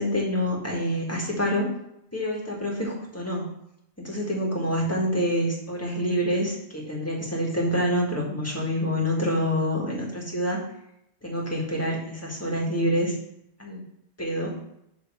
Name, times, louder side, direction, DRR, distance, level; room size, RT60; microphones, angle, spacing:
voice 1, 0.0-1.7 2.1-3.5 4.0-10.6 11.2-13.2 13.6-13.8 14.2-14.5, equal, 15° left, -3 dB, 1.8 m, -27 dB
7.7 x 3.4 x 6.2 m, 0.78 s
omnidirectional pair, 1.2 m